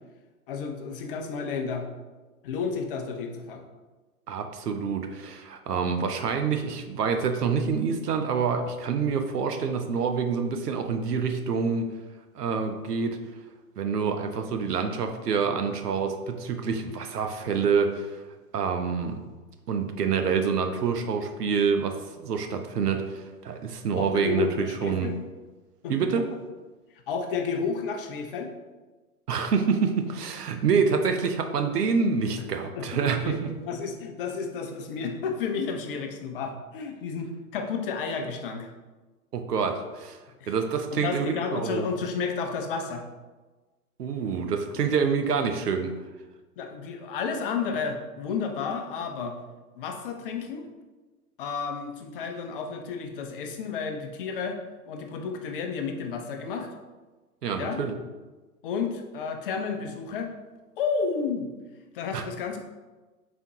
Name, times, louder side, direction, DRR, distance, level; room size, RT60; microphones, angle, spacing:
voice 1, 0.5-1.9 2.4-3.6 24.0-25.2 25.8-26.0 27.1-28.5 32.8-33.4 33.7-38.7 40.4-40.5 40.9-43.1 46.6-49.4 49.7-50.7 51.4-54.6 54.9-56.7 57.5-57.8 58.6-60.3 60.8-61.5 61.9-62.6, left 5 dB, 40° left, 5 dB, 0.5 m, -31 dB
voice 2, 4.3-11.9 12.3-13.2 13.8-18.2 18.5-19.2 19.7-25.1 25.9-26.2 29.3-33.5 39.3-40.2 40.5-41.9 44.0-45.9 57.4-58.0 62.1-62.2, right 5 dB, 85° right, 6 dB, 0.6 m, -27 dB
4.4 x 3.5 x 2.7 m, 1.2 s
figure-of-eight pair, 115°, 46 cm